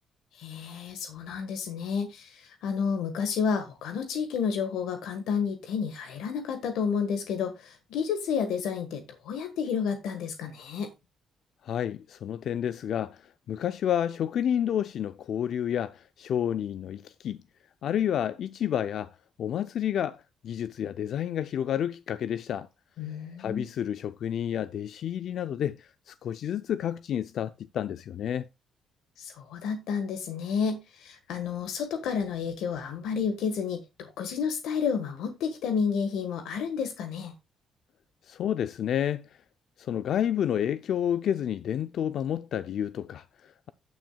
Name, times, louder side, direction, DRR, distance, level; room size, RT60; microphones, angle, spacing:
voice 1, 0.3-10.9 23.0-23.7 29.2-37.3, left 6 dB, 85° left, 1.4 m, -31 dB
voice 2, 11.6-17.4 17.8-19.1 19.4-22.7 23.4-28.5 38.3-39.3 39.8-43.7, left 9 dB, 70° left, 0.4 m, -30 dB
15.5 x 6.3 x 2.3 m
cardioid pair, 90°, 0 cm